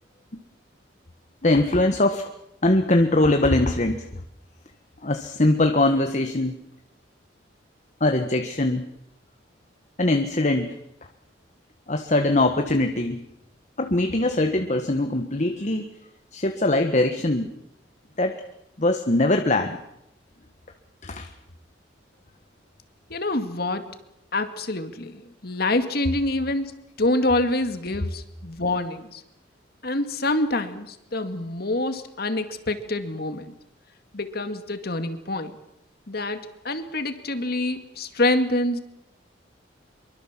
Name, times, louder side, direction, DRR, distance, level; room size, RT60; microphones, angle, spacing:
voice 1, 1.4-2.3 2.6-4.0 5.0-6.6 8.0-8.8 10.0-10.8 11.9-13.2 13.8-15.9 16.3-17.5 18.2-18.4 18.8-19.8 21.0-21.3, left 2 dB, 40° left, 6 dB, 1.4 m, -22 dB
voice 2, 23.1-23.9 24.3-29.2 29.8-33.5 34.1-35.6 36.1-38.8, left 2 dB, 55° left, 9 dB, 2.2 m, -26 dB
25.0 x 23.5 x 7.4 m, 0.80 s
head